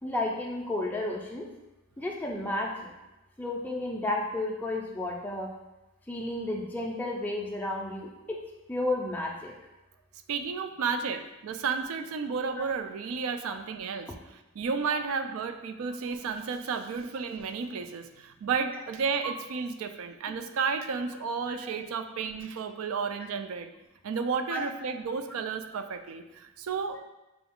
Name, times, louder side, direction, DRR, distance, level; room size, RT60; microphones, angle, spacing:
voice 1, 0.0-1.5 2.0-2.9 3.4-5.5 6.1-8.4 8.7-9.5 12.6-12.7 13.5-13.6 21.6-21.7 24.5-24.6, left 2 dB, 10° left, -2 dB, 0.4 m, -32 dB
voice 2, 10.3-23.7 24.0-27.0, right 5 dB, 70° right, 8 dB, 0.3 m, -32 dB
5.1 x 2.3 x 3.5 m, 1.0 s
head